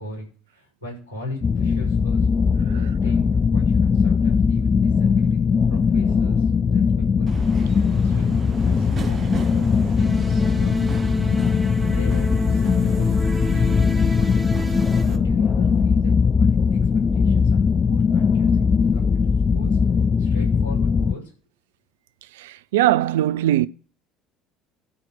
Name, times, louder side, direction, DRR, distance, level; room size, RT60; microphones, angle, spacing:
voice 1, 0.0-2.3 2.7-5.4 5.7-6.8 7.2-7.4 8.0-8.3 8.6-11.3 11.9-13.1 13.4-14.4 15.0-19.8 20.2-21.3, left 2 dB, 80° left, 6.4 m, -39 dB
sound 1, 1.4-21.1, left 5 dB, 30° left, 0.4 m, -20 dB
Subway metro underground, 7.3-15.2, right 5 dB, 35° right, 1.2 m, -35 dB
sound 2, 10.0-15.0, right 2 dB, 5° right, 1.6 m, -33 dB
voice 2, 22.4-23.7, right 13 dB, 65° right, 0.4 m, -20 dB
12.0 x 4.3 x 7.6 m
figure-of-eight pair, 60°, 0 cm